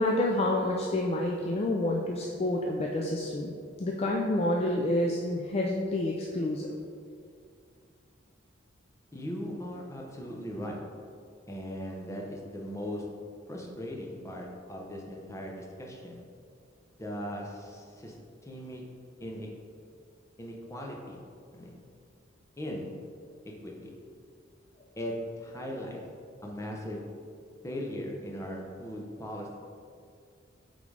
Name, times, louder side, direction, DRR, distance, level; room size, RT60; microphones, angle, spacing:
voice 1, 0.0-6.7, left 1 dB, 30° left, -1 dB, 0.4 m, -28 dB
voice 2, 9.1-10.8 11.5-13.0 13.5-16.2 17.0-18.1 18.4-18.8 19.2-19.5 20.4-21.2 21.5-21.7 22.6-22.9 23.6-23.9 25.0-26.0 26.4-27.0 27.6-29.6, equal, 15° left, -1 dB, 0.8 m, -38 dB
8.3 x 3.9 x 3.3 m, 2.3 s
head